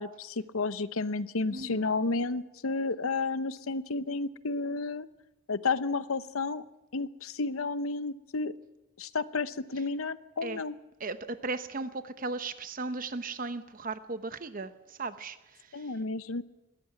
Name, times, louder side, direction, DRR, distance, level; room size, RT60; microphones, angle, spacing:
voice 1, 0.0-5.1 5.5-6.6 6.9-8.5 9.0-10.7 15.7-16.4, left 3 dB, 80° left, 0.9 m, -31 dB
voice 2, 1.5-1.9 10.4-10.6 11.0-15.9, right 3 dB, 40° right, 0.9 m, -37 dB
21.5 x 16.5 x 9.6 m
head